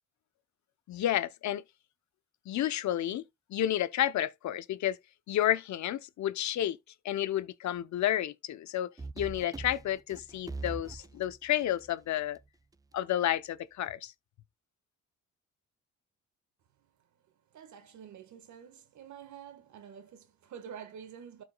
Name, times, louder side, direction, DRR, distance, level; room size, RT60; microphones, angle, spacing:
voice 1, 0.9-1.6 2.5-3.2 3.5-5.0 5.3-6.8 7.0-8.9 9.2-12.4 12.9-14.1, left 12 dB, 70° left, 0.8 m, -31 dB
sound 1, 9.0-12.4, right 3 dB, 15° right, 0.3 m, -42 dB
voice 2, 17.5-21.4, right 8 dB, 70° right, 1.7 m, -48 dB
12.5 x 4.9 x 2.3 m
cardioid pair, 90°, 30 cm